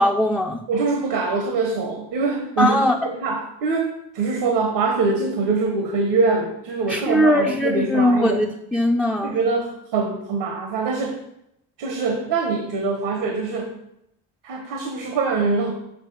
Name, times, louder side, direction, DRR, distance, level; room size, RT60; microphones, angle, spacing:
voice 1, 0.0-0.6 2.6-3.0 6.9-9.4, left 1 dB, ahead, 1 dB, 0.5 m, -20 dB
voice 2, 0.7-3.9 4.1-8.4 9.2-11.2 11.8-13.7 14.4-15.7, right 4 dB, 70° right, 3 dB, 1.3 m, -23 dB
6.7 x 4.4 x 6.2 m, 0.80 s
cardioid pair, 95°, 43 cm